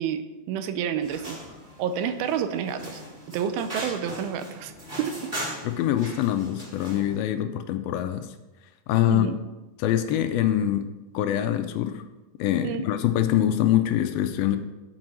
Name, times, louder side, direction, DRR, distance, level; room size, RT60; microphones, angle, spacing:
voice 1, 0.0-1.4 1.8-3.0 3.3-4.7 5.0-5.3 9.1-9.4 12.6-12.9, right 8 dB, 80° right, 10 dB, 2.4 m, -29 dB
sound 1, 1.0-7.1, equal, 15° right, 2.8 m, -39 dB
voice 2, 5.6-8.3 8.9-9.3 9.8-10.8 11.1-12.0 12.4-14.6, left 12 dB, 80° left, 8 dB, 2.3 m, -24 dB
7.5 x 5.4 x 7.5 m, 1.1 s
omnidirectional pair, 4.4 m